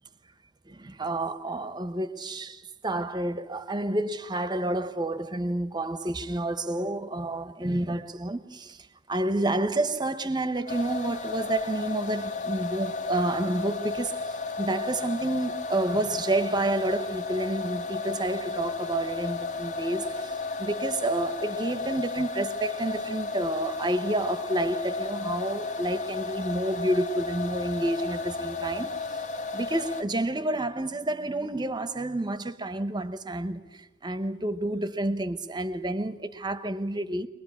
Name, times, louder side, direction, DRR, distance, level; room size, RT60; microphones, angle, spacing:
voice 1, 0.7-29.0 29.5-37.3, right 1 dB, 20° right, 1.0 m, -29 dB
sound 1, 10.7-30.0, left 3 dB, 40° left, 1.5 m, -33 dB
23.0 x 20.5 x 8.6 m
head